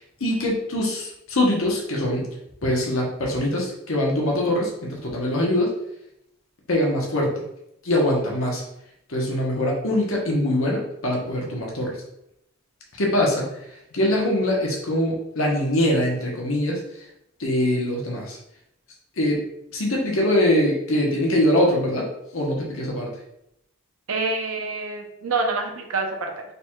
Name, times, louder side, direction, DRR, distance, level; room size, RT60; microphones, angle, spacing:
voice 1, 0.2-2.3 2.6-5.8 6.7-7.3 7.8-8.6 9.1-12.0 13.0-13.5 13.9-16.8 17.4-18.4 19.2-19.4 19.7-23.1, left 1 dB, 70° left, -2 dB, 1.1 m, -23 dB
voice 2, 24.1-26.4, right 3 dB, 80° right, 2 dB, 0.8 m, -27 dB
4.0 x 2.4 x 4.5 m, 0.78 s
head